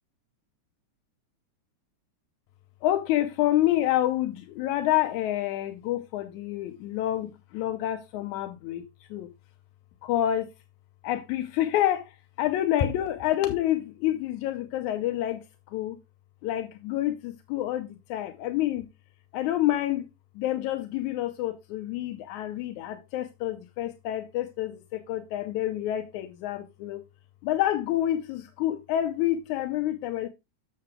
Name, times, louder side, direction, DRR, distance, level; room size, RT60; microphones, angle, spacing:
voice 1, 2.8-8.8 9.1-9.3 10.0-10.5 11.0-12.1 12.4-15.4 15.7-16.0 16.4-18.9 19.3-20.0 20.4-27.0 27.4-30.3, left 13 dB, 85° left, 2.1 m, -28 dB
7.7 x 6.7 x 3.6 m
omnidirectional pair, 3.4 m